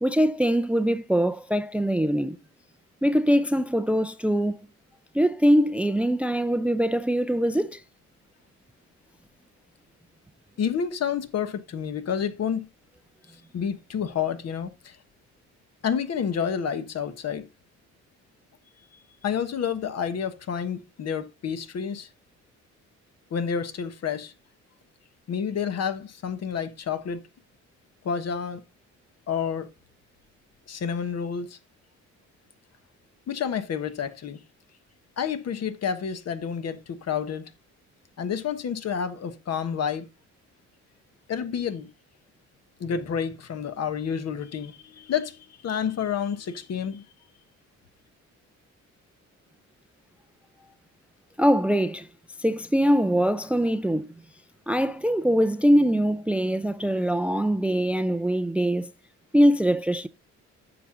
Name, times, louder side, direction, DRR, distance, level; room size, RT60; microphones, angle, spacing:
voice 1, 0.0-2.4 3.0-4.6 5.1-7.8 51.4-52.1 52.4-54.1 54.7-58.9 59.3-60.1, equal, 5° right, 0.4 m, -22 dB
voice 2, 10.6-12.7 13.5-15.0 15.8-17.5 19.2-22.1 23.3-24.3 25.3-27.2 28.0-28.6 29.3-29.7 30.7-31.6 33.3-34.4 35.2-37.5 38.2-40.1 41.3-41.9 42.8-47.0, left 7 dB, 55° left, 1.2 m, -29 dB
9.2 x 6.0 x 3.8 m
cardioid pair, 90°, 30 cm